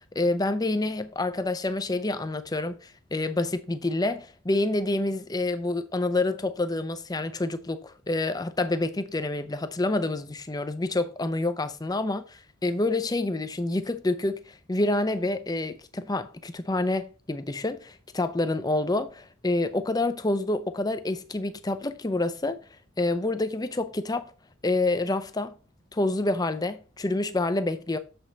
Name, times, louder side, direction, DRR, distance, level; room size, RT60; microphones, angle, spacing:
voice 1, 0.1-22.6 23.0-24.3 24.6-25.5 25.9-28.0, left 2 dB, 20° left, 0.5 m, -28 dB
7.0 x 5.1 x 4.0 m
head